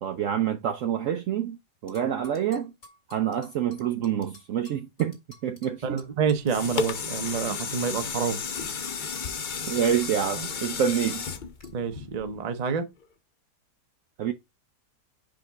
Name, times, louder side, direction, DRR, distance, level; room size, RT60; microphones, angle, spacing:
voice 1, 0.0-2.7 3.1-5.2 5.4-6.0 9.7-11.3 14.2-14.3, right 9 dB, 65° right, 0.8 m, -27 dB
sound 1, 1.9-7.0 7.3-11.3 11.6-11.7, left 1 dB, 40° left, 2.2 m, -52 dB
voice 2, 5.8-8.4 11.7-12.9, right 6 dB, 35° right, 0.6 m, -28 dB
sound 2, 6.2-12.5 13.0-13.1, left 5 dB, 75° left, 0.4 m, -33 dB
5.1 x 3.8 x 5.8 m
omnidirectional pair, 1.8 m